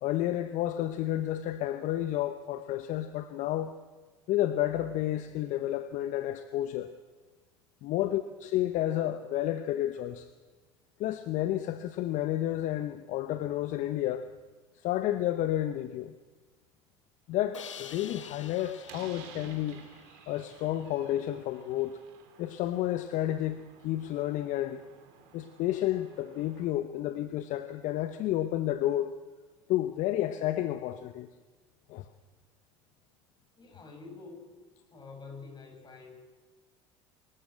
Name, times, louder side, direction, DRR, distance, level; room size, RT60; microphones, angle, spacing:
voice 1, 0.0-3.7 4.3-6.9 7.8-10.3 11.0-14.3 14.8-16.1 17.3-19.8 20.3-22.0 22.4-24.8 25.3-29.1 29.7-31.3 31.9-32.1, left 13 dB, 55° left, 11 dB, 1.0 m, -31 dB
Crash cymbal, 17.5-20.6, left 9 dB, 90° left, 0.9 m, -48 dB
Slam, 18.0-26.7, right 8 dB, 65° right, 3.4 m, -54 dB
voice 2, 33.6-34.6 34.9-36.2, left 4 dB, 30° left, 2 dB, 7.7 m, -47 dB
25.0 x 13.5 x 7.9 m, 1.3 s
hypercardioid pair, 70°, 15 cm